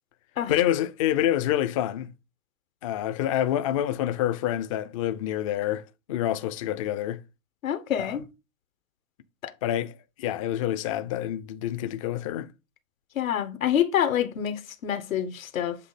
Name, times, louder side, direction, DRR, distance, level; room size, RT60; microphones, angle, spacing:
voice 1, 0.5-2.1 2.8-7.2 8.0-8.2 9.6-12.5, left 12 dB, 30° left, 0.4 m, -27 dB
voice 2, 7.6-8.3 9.4-9.5 13.1-15.8, left 10 dB, 85° left, 1.2 m, -27 dB
7.5 x 3.2 x 4.0 m
hypercardioid pair, 145°, 40 cm